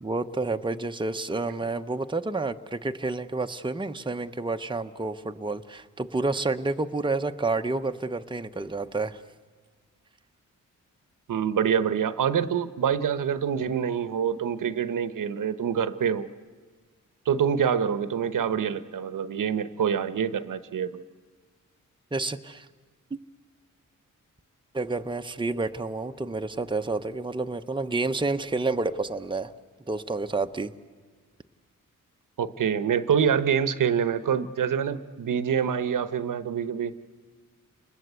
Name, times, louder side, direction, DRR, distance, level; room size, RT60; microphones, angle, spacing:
voice 1, 0.0-9.2 22.1-22.7 24.7-29.5 29.9-30.7, right 3 dB, 15° right, 6 dB, 0.9 m, -29 dB
voice 2, 11.3-16.3 17.3-21.0 32.4-36.9, right 7 dB, 75° right, 12 dB, 1.0 m, -26 dB
29.5 x 20.5 x 8.2 m, 1.6 s
cardioid pair, 75°, 33 cm